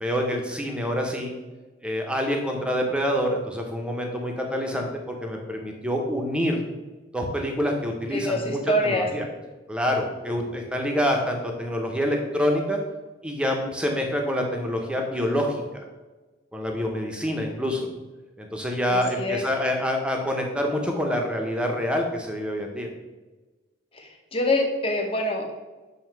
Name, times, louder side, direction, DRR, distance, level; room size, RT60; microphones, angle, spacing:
voice 1, 0.0-1.3 1.8-6.6 7.1-9.3 9.7-12.8 13.2-15.6 16.5-17.9 18.4-22.9, equal, 5° right, 2 dB, 0.6 m, -26 dB
voice 2, 8.1-9.1 18.9-19.4 23.9-25.5, left 1 dB, 30° left, 2 dB, 0.8 m, -25 dB
7.5 x 2.8 x 4.5 m, 1.2 s
head